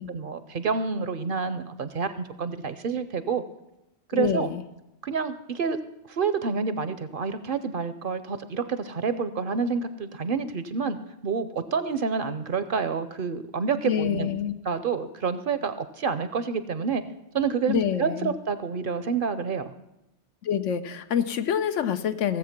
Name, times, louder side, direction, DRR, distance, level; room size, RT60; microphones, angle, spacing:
voice 1, 0.1-2.1 2.4-3.4 4.1-4.5 5.0-5.8 6.1-17.0 17.3-19.7, right 5 dB, 55° right, 12 dB, 0.7 m, -28 dB
voice 2, 4.1-4.6 13.8-14.5 17.7-18.3 20.4-22.4, left 9 dB, 85° left, 10 dB, 1.1 m, -26 dB
16.0 x 7.6 x 5.9 m, 0.90 s
omnidirectional pair, 1.2 m